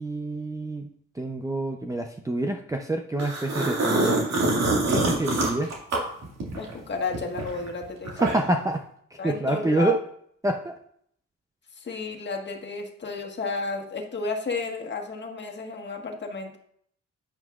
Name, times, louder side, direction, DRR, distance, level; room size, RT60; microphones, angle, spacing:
voice 1, 0.0-4.3 4.9-5.7 8.2-8.9 9.1-10.0 10.4-10.7, right 2 dB, 10° right, 3 dB, 0.6 m, -27 dB
sound 1, 3.2-6.7 7.1-8.6, right 2 dB, 60° right, 2.3 m, -25 dB
voice 2, 6.5-8.2 9.2-9.9 11.8-16.6, left 4 dB, 35° left, 2 dB, 1.6 m, -32 dB
9.1 x 8.9 x 2.5 m, 0.67 s
cardioid pair, 90°, 30 cm